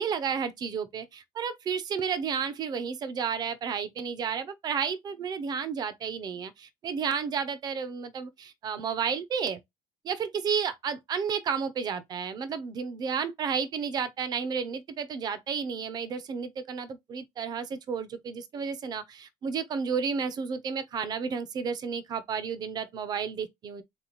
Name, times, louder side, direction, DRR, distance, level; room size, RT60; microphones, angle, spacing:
voice 1, 0.0-9.6 10.0-23.8, right 6 dB, 25° right, 0.5 m, -32 dB
3.8 x 2.9 x 3.9 m
cardioid pair, 180°, 16 cm